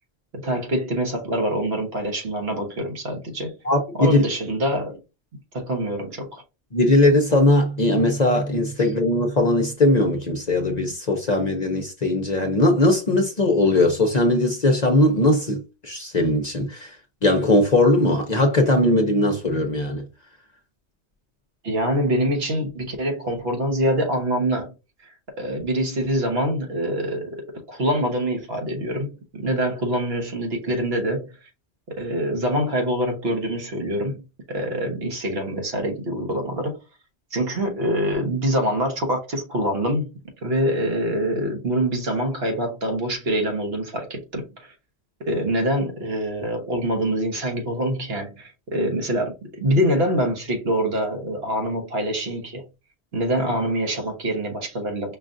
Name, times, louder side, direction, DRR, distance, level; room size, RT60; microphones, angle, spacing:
voice 1, 0.3-3.6 4.0-5.0 5.5-6.4 21.6-24.7 25.0-31.4 31.9-34.2 34.5-36.8 37.3-40.1 40.4-44.7 45.2-52.6 53.1-55.2, equal, 60° right, 1.3 m, -25 dB
voice 2, 3.6-4.2 6.7-17.0 17.2-20.0, left 1 dB, 45° left, 0.7 m, -19 dB
5.4 x 2.4 x 2.5 m
omnidirectional pair, 1.2 m